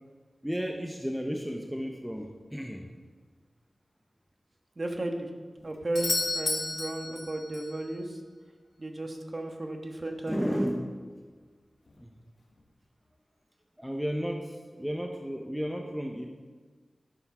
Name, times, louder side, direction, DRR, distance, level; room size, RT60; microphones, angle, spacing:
voice 1, 0.4-2.9 10.3-11.0 12.0-12.1 13.8-16.3, equal, 5° right, 3 dB, 0.7 m, -33 dB
voice 2, 4.8-5.3 5.6-8.2 8.8-10.4, right 1 dB, 40° right, 3 dB, 1.4 m, -34 dB
Doorbell, 5.9-7.8 11.9-12.0, left 3 dB, 75° left, 1.2 m, -32 dB
12.5 x 7.1 x 5.4 m, 1.5 s
wide cardioid pair, 110°, 0 cm